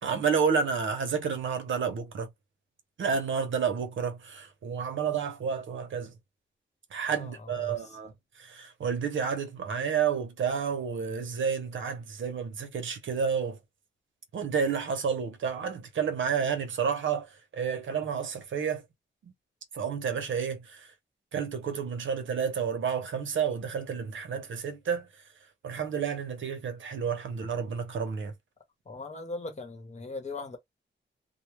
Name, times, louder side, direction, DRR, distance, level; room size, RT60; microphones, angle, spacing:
voice 1, 0.0-2.3 3.0-6.1 6.9-13.6 14.3-18.8 19.2-19.3 19.7-20.9 21.3-25.1 25.6-28.3, right 6 dB, 80° right, 0.7 m, -30 dB
voice 2, 7.1-8.0 28.9-30.6, left 3 dB, 35° left, 0.9 m, -40 dB
2.2 x 2.0 x 3.0 m
wide cardioid pair, 105°, 20 cm